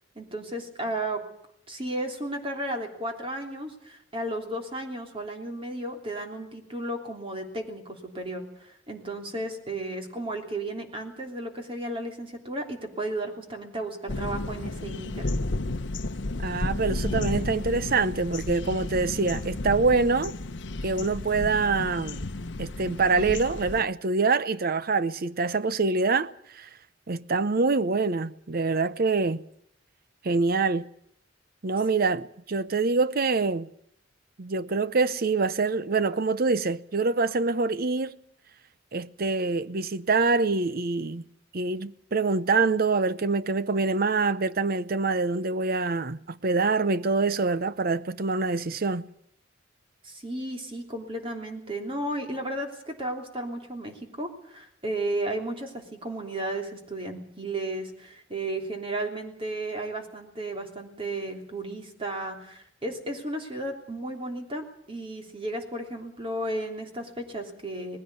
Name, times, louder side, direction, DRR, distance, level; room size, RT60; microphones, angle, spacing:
voice 1, 0.1-1.2 1.7-15.3 50.0-68.0, right 1 dB, 30° right, 3.2 m, -34 dB
sound 1, 14.1-23.8, left 2 dB, 70° left, 0.9 m, -32 dB
voice 2, 16.4-20.3 20.8-22.3 22.6-26.3 26.6-26.7 27.1-29.4 30.2-30.9 31.6-33.7 34.4-38.2 38.9-41.2 41.5-49.0, right 4 dB, 55° right, 0.8 m, -25 dB
20.0 x 16.0 x 8.3 m
head